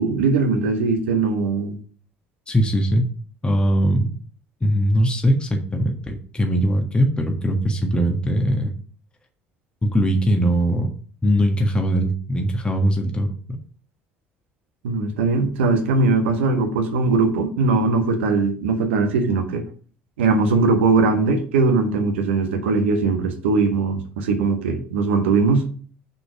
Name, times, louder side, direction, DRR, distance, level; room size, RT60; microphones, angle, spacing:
voice 1, 0.0-1.8 14.8-19.6 20.2-25.6, right 3 dB, 70° right, 5 dB, 1.5 m, -20 dB
voice 2, 2.5-3.1 3.4-4.1 4.6-8.7 9.8-10.9 11.2-13.3, equal, 15° left, 2 dB, 1.5 m, -20 dB
6.2 x 5.8 x 6.0 m, 0.42 s
figure-of-eight pair, 60°, 6 cm